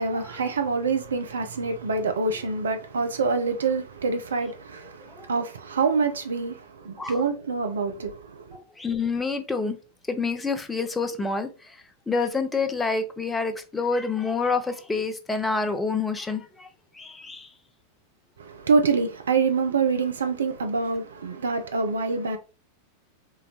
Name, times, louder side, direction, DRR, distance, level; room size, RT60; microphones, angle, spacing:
voice 1, 0.0-8.4 18.4-22.4, right 4 dB, 70° right, 0.6 m, -26 dB
voice 2, 8.5-9.8 10.1-11.5 12.1-16.7 17.0-17.5, left 4 dB, 10° left, 0.6 m, -27 dB
3.7 x 3.4 x 2.9 m
figure-of-eight pair, 90°, 0 cm